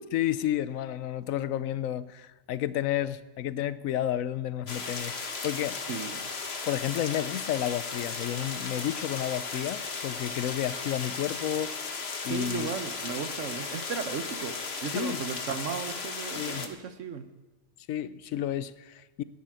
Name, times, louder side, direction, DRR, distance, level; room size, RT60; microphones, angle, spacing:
voice 1, 0.1-5.2 5.4-5.8 6.6-11.7 12.2-12.7 14.9-15.2 16.3-16.7 17.9-19.2, left 11 dB, 85° left, 15 dB, 1.1 m, -31 dB
sound 1, 4.7-16.7, left 4 dB, 55° left, 1.4 m, -36 dB
voice 2, 5.9-6.2 12.3-14.6 14.8-17.3, right 6 dB, 70° right, 9 dB, 1.3 m, -35 dB
11.0 x 9.7 x 9.4 m, 1.2 s
omnidirectional pair, 1.4 m